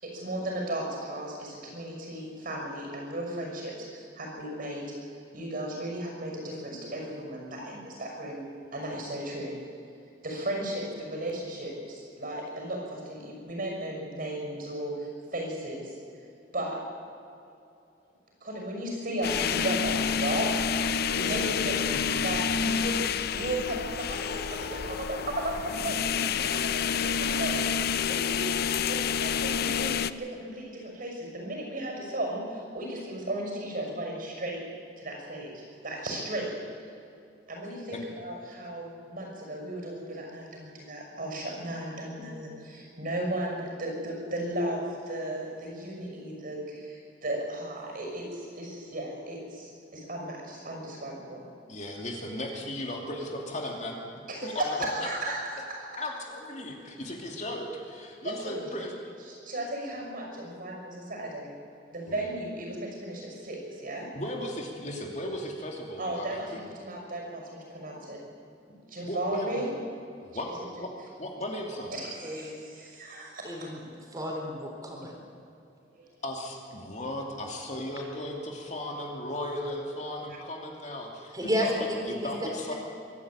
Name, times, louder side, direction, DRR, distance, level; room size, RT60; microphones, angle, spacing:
voice 1, 0.0-8.4 8.7-9.5 10.2-16.0 16.5-16.8 18.4-20.5 21.1-21.8 22.1-26.0 26.3-27.7 28.0-34.6 35.0-36.5 37.5-51.4 54.3-55.6 55.9-56.0 58.2-58.6 59.3-61.5 61.9-64.1 66.0-68.2 68.9-69.7 70.5-70.6 71.9-73.7 75.9-76.0, right 1 dB, 50° right, 1 dB, 6.0 m, -35 dB
sound 1, 19.2-30.1, left 7 dB, 60° left, 0.6 m, -28 dB
voice 2, 21.1-21.6 21.9-22.0 37.9-38.0 51.7-54.0 54.4-54.6 55.0-55.1 56.0-58.9 62.1-62.2 64.1-66.6 69.1-69.6 70.3-70.9 71.2-71.9 76.2-81.8 82.1-82.7, left 1 dB, 40° left, 1 dB, 2.7 m, -36 dB
voice 3, 73.4-73.8 74.1-75.1 81.3-81.7 82.1-82.3 82.6-82.7, equal, 20° right, 0 dB, 4.3 m, -32 dB
24.0 x 12.5 x 8.7 m, 2.7 s
head